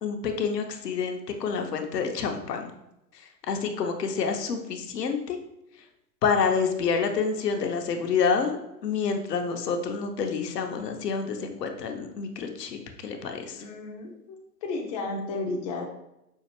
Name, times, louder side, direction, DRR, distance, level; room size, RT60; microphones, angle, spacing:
voice 1, 0.0-2.7 3.1-5.4 6.2-13.6, left 5 dB, 70° left, 4 dB, 0.8 m, -28 dB
voice 2, 13.5-15.8, left 3 dB, 25° left, 0 dB, 0.4 m, -33 dB
5.5 x 2.5 x 2.9 m, 0.86 s
figure-of-eight pair, 105°, 50 cm